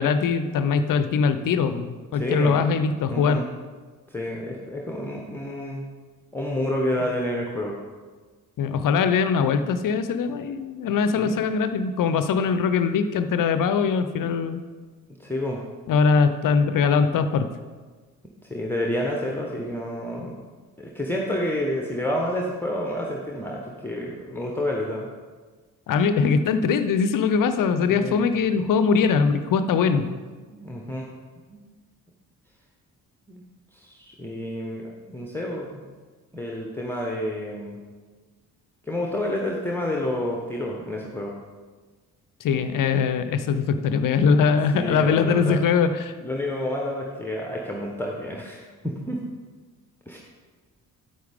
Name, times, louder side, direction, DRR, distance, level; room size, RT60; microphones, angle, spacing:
voice 1, 0.0-3.4 8.6-14.6 15.9-17.5 25.9-30.0 42.4-46.1, left 5 dB, 45° left, 11 dB, 0.7 m, -22 dB
voice 2, 2.1-2.6 3.1-3.4 4.1-5.8 6.3-7.7 11.2-11.4 14.2-14.3 15.2-15.6 18.5-20.4 20.8-25.1 27.9-28.2 30.5-31.1 31.5-31.6 33.3-33.4 33.7-35.9 36.3-37.8 38.9-41.3 44.5-45.6 46.2-49.2 50.1-50.2, left 1 dB, 5° left, -1 dB, 1.2 m, -29 dB
9.3 x 8.7 x 3.6 m, 1.4 s
figure-of-eight pair, 40°, 44 cm